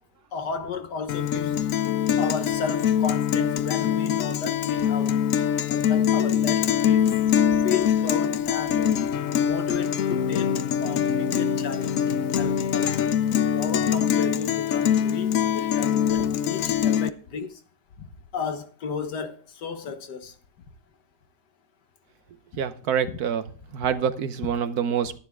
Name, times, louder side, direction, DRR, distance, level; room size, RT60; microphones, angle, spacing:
voice 1, 0.3-1.6 2.2-5.2 5.7-7.1 7.5-8.9 9.4-12.9 13.5-17.6 18.0-18.1 18.3-20.3 23.1-23.2, left 6 dB, 85° left, 1.9 m, -33 dB
Guitar, 1.1-17.1, left 9 dB, 65° left, 1.0 m, -23 dB
voice 2, 22.6-23.4 23.7-25.2, right 8 dB, 70° right, 1.4 m, -26 dB
11.5 x 11.0 x 3.5 m
omnidirectional pair, 1.7 m